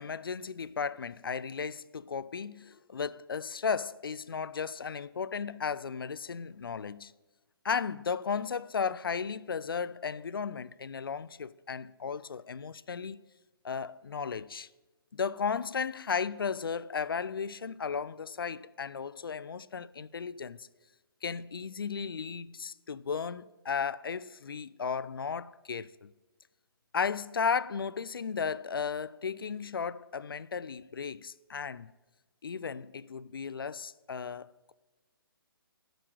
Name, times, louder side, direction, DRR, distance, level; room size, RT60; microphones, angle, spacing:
voice 1, 0.0-7.1 7.6-13.2 13.6-14.7 15.1-20.7 21.2-26.1 26.9-31.9 32.4-34.7, left 6 dB, 65° left, 0.4 m, -35 dB
9.8 x 6.0 x 6.4 m
figure-of-eight pair, 135°, 13 cm